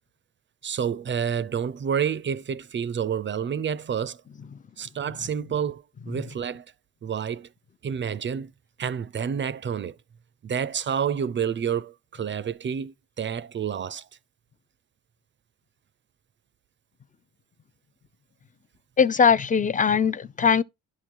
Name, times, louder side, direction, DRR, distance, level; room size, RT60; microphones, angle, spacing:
voice 1, 0.6-4.2 4.8-6.7 7.0-7.5 7.8-8.5 8.8-10.0 10.4-14.1, right 7 dB, 40° right, 0.6 m, -29 dB
voice 2, 19.0-20.6, left 6 dB, 25° left, 0.6 m, -20 dB
11.0 x 3.8 x 4.6 m
cardioid pair, 90°, 30 cm